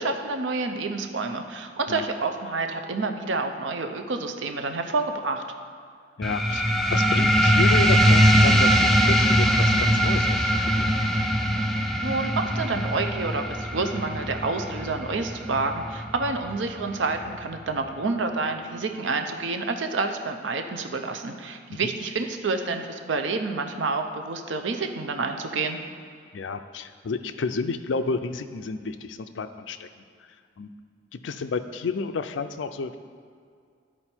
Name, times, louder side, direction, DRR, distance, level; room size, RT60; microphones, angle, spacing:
voice 1, 0.0-5.4 12.0-25.8, right 3 dB, 85° right, 6 dB, 0.6 m, -28 dB
voice 2, 6.2-10.9 21.7-21.9 26.3-29.9 30.6-30.7 31.1-33.0, left 4 dB, 80° left, 10 dB, 0.4 m, -31 dB
sound 1, 6.2-17.3, equal, ahead, 0.4 m, -21 dB
11.5 x 4.4 x 4.4 m, 2.2 s
head